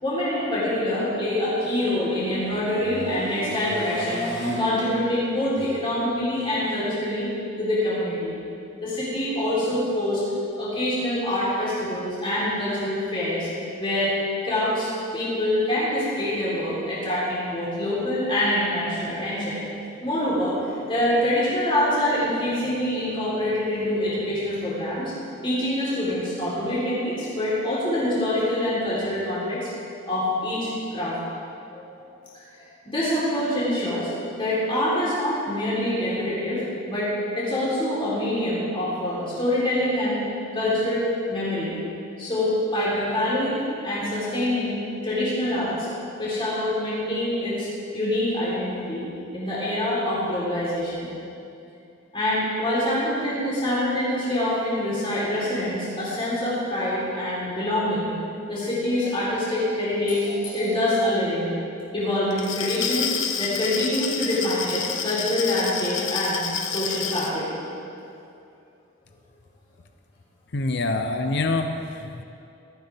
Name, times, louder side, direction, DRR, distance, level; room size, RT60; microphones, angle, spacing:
voice 1, 0.0-7.3 7.6-8.4 8.8-10.2 10.6-13.5 13.8-14.1 14.4-19.6 20.0-25.1 25.4-29.7 30.1-31.2 31.7-31.9 32.8-34.1 34.4-37.1 37.3-40.2 40.5-41.0 41.3-41.7 42.2-44.8 45.0-45.9 46.2-47.7 47.9-49.1 49.3-51.1 52.1-58.1 58.5-61.5 61.9-63.1 63.4-67.5, left 1 dB, 30° left, -9 dB, 3.7 m, -25 dB
Glass, 62.3-67.3, left 7 dB, 90° left, 1.0 m, -29 dB
voice 2, 70.5-72.2, left 2 dB, 60° left, 6 dB, 0.7 m, -26 dB
18.0 x 14.0 x 3.5 m, 2.6 s
head